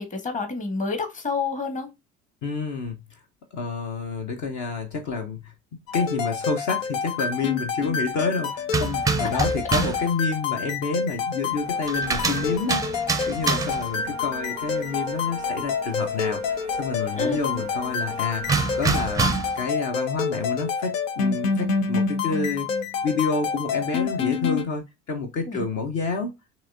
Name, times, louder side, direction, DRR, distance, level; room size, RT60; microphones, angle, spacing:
voice 1, 0.0-1.9 9.3-9.5 17.2-17.4 25.5-25.6, left 4 dB, 20° left, 1.1 m, -28 dB
voice 2, 2.4-3.2 3.5-5.5 5.9-16.4 16.8-19.3 19.5-22.7 23.0-26.3, left 4 dB, 50° left, 0.9 m, -29 dB
sound 1, 5.9-24.7, left 6 dB, 75° left, 0.6 m, -28 dB
sound 2, 8.7-10.1 11.9-13.9 18.5-19.6, right 5 dB, 10° right, 0.5 m, -26 dB
sound 3, 11.4-18.8, right 5 dB, 90° right, 0.5 m, -41 dB
5.9 x 2.9 x 2.5 m
figure-of-eight pair, 60°, 38 cm